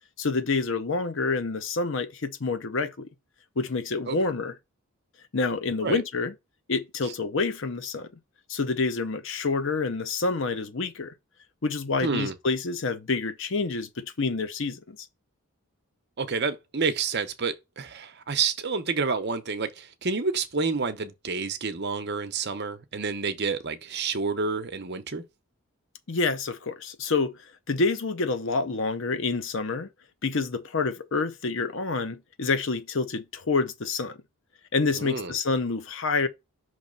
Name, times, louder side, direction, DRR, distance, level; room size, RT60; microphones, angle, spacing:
voice 1, 0.2-3.1 3.6-4.5 5.3-6.3 6.7-8.1 8.5-11.1 11.6-15.0 26.1-27.3 27.7-29.9 30.2-34.2 34.7-36.3, left 4 dB, 60° left, 0.7 m, -27 dB
voice 2, 12.0-12.3 16.2-25.2 35.0-35.3, right 4 dB, 50° right, 0.8 m, -29 dB
5.8 x 3.1 x 5.2 m
head